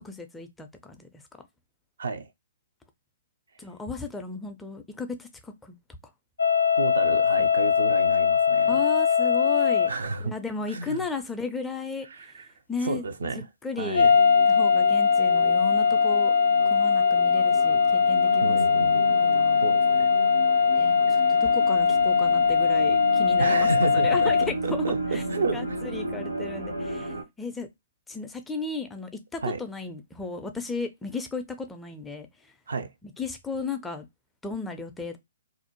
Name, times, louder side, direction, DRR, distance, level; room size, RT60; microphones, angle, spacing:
voice 1, 0.0-1.1 3.6-5.8 8.7-9.9 10.2-12.4 12.7-13.0 13.6-14.1 14.5-16.3 16.7-19.6 20.7-24.9 25.1-25.2 25.5-27.7 28.1-32.5 33.0-34.1 34.4-35.2, left 4 dB, 10° left, 0.4 m, -35 dB
voice 2, 2.0-2.3 6.8-8.8 9.9-10.3 10.7-11.1 12.0-12.5 12.8-13.4 13.8-14.2 18.4-19.0 19.6-20.1 21.1-21.4 23.4-25.8 29.4-29.6 32.7-32.9, right 4 dB, 70° right, 0.4 m, -31 dB
sound 1, 6.4-9.9 13.9-24.5, left 6 dB, 80° left, 0.3 m, -21 dB
sound 2, 14.1-27.2, right 2 dB, 90° right, 0.8 m, -35 dB
2.4 x 2.0 x 2.9 m
figure-of-eight pair, 125°, 0 cm